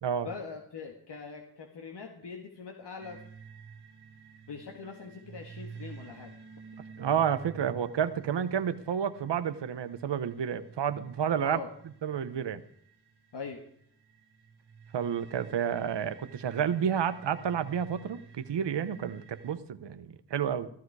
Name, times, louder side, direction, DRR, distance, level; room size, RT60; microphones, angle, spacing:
voice 1, 0.2-3.2 4.5-6.3 11.4-11.7 13.3-13.6, left 5 dB, 80° left, 2 dB, 1.8 m, -42 dB
sound 1, 3.0-19.6, right 6 dB, 70° right, 1.5 m, -51 dB
voice 2, 7.0-11.6 12.0-12.6 14.9-20.7, right 8 dB, 85° right, 12 dB, 1.0 m, -30 dB
14.5 x 14.5 x 4.8 m, 0.66 s
cardioid pair, 65°, 41 cm